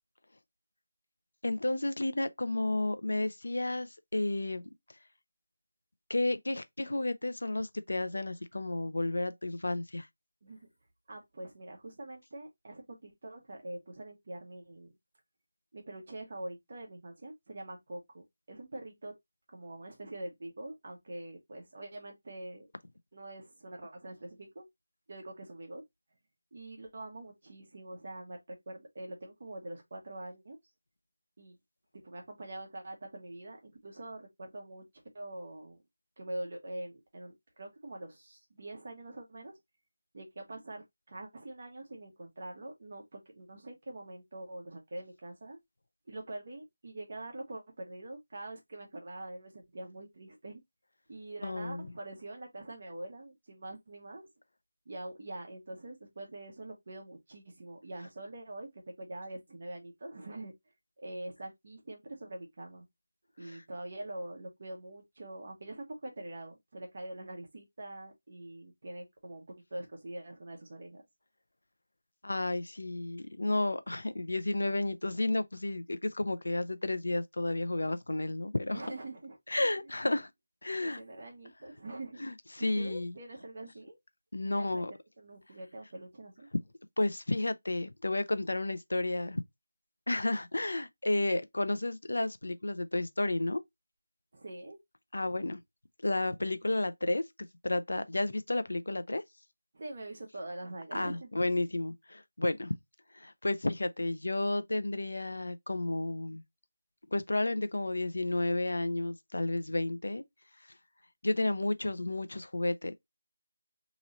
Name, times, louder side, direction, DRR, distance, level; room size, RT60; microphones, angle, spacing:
voice 1, 1.4-4.7 6.1-10.1 51.4-51.9 63.5-63.6 72.2-78.8 79.5-80.3 80.6-81.0 82.2-83.1 84.3-84.9 87.0-89.4 90.1-93.6 95.1-95.6 96.0-97.2 97.6-99.2 100.9-102.7 103.1-106.4 107.1-110.2 111.2-112.9, left 2 dB, 80° left, 0.6 m, -32 dB
voice 2, 11.1-14.9 15.7-19.1 19.5-22.7 23.1-24.7 25.1-25.8 26.5-30.6 31.4-31.6 31.9-34.8 35.1-35.8 36.2-39.6 40.1-45.6 46.1-50.6 51.1-54.3 54.9-60.5 61.0-62.8 63.4-71.0 78.7-79.7 80.8-82.2 82.6-84.0 84.4-84.8 85.2-86.5 94.3-94.8 99.7-101.3, right 1 dB, 35° right, 1.0 m, -44 dB
3.0 x 2.6 x 4.0 m
figure-of-eight pair, 180°, 0 cm